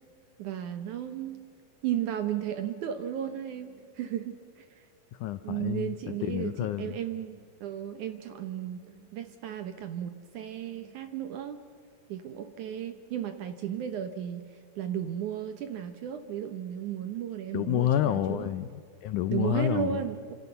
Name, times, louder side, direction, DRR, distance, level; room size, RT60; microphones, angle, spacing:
voice 1, 0.4-1.4 1.8-4.9 5.4-11.6 12.1-18.5 19.3-20.3, right 10 dB, 70° right, 9 dB, 2.0 m, -34 dB
voice 2, 5.1-7.0 17.5-20.0, left 12 dB, 85° left, 12 dB, 1.7 m, -29 dB
27.0 x 26.5 x 6.8 m, 2.3 s
omnidirectional pair, 4.5 m